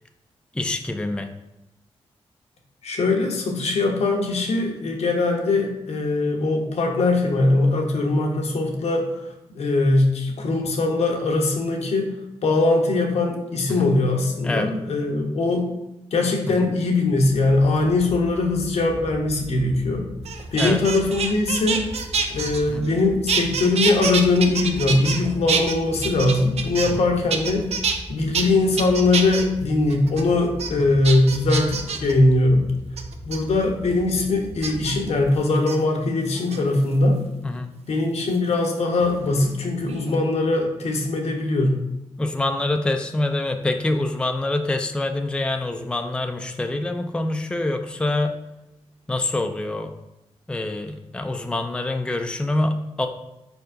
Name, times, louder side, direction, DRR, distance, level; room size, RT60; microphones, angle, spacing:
voice 1, 0.5-1.3 13.7-13.9 14.4-14.7 16.5-16.7 20.6-20.8 22.7-22.9 37.4-37.7 42.2-48.3 49.1-49.9 50.5-53.1, left 2 dB, 10° left, 5 dB, 0.4 m, -25 dB
voice 2, 2.8-9.2 9.5-12.1 12.4-15.7 16.1-20.1 20.5-21.8 22.3-27.7 28.1-32.6 33.2-37.2 37.9-41.8, left 2 dB, 75° left, 1 dB, 0.8 m, -21 dB
sound 1, 17.2-35.3, equal, 10° right, 0.7 m, -39 dB
sound 2, 20.3-23.0 23.3-25.2 25.5-27.0 27.3-28.0 28.3-28.4 28.8-29.5 29.9-30.2 30.6-30.7 31.0-32.1 33.0-33.4 34.6-34.9 35.6-35.8 36.4-36.9 38.3-39.5 39.8-40.2, right 5 dB, 70° right, 0.5 m, -26 dB
4.5 x 4.2 x 2.7 m, 0.90 s
cardioid pair, 60°, 11 cm